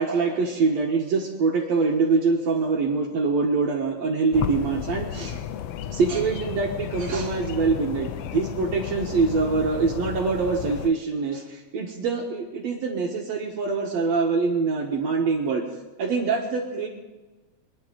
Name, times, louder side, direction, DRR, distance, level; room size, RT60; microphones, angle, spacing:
voice 1, 0.0-5.4 5.9-15.6 16.0-16.9, right 4 dB, 65° right, 0 dB, 2.5 m, -24 dB
sound 1, 4.3-10.9, left 9 dB, 75° left, 1.5 m, -33 dB
24.5 x 10.0 x 3.9 m, 1.2 s
omnidirectional pair, 3.4 m